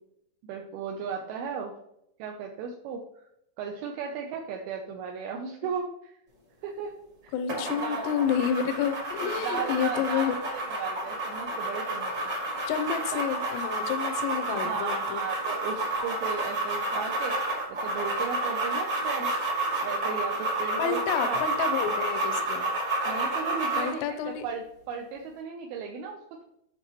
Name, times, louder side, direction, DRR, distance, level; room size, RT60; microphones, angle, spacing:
voice 1, 0.4-1.7 2.2-3.2 3.6-6.2 6.6-7.0 7.2-8.1 9.2-12.2 13.1-13.2 14.5-19.3 19.8-21.4 23.0-26.4, right 6 dB, 80° right, 1 dB, 2.4 m, -36 dB
voice 2, 7.3-10.3 12.7-15.3 20.8-22.7 23.8-24.5, left 8 dB, 85° left, 8 dB, 2.8 m, -29 dB
sound 1, 7.5-24.0, right 2 dB, 30° right, 1.9 m, -30 dB
8.1 x 5.6 x 3.0 m, 0.77 s
omnidirectional pair, 4.9 m